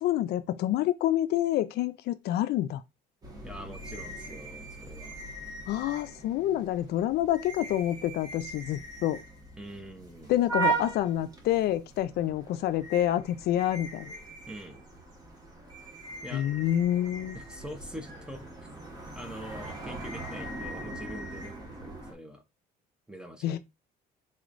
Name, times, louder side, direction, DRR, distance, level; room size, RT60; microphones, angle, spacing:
voice 1, 0.0-2.8 5.7-9.2 10.3-14.1 16.3-17.4 23.4-23.6, left 12 dB, 70° left, 0.4 m, -28 dB
sound 1, 3.2-22.1, right 4 dB, 20° right, 1.2 m, -39 dB
voice 2, 3.4-5.2 9.6-10.3 14.5-14.8 16.2-16.5 17.3-18.8 19.1-22.4 23.1-23.6, equal, 5° right, 0.8 m, -44 dB
4.1 x 3.0 x 2.5 m
cardioid pair, 110°, 17 cm